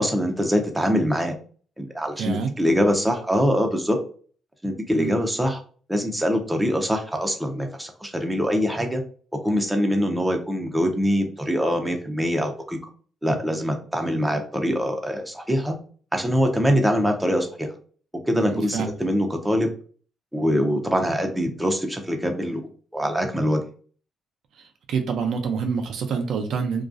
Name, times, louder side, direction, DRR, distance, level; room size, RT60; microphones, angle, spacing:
voice 1, 0.0-1.3 1.8-4.0 4.6-5.6 5.9-9.0 9.4-12.8 13.2-15.7 16.1-17.7 18.3-19.7 20.3-23.6, equal, 5° right, 3 dB, 0.6 m, -23 dB
voice 2, 2.2-2.5 4.9-5.1 18.3-18.9 24.5-26.9, right 6 dB, 75° right, 4 dB, 0.4 m, -27 dB
2.3 x 2.2 x 2.5 m, 0.43 s
supercardioid pair, 65°, 0 cm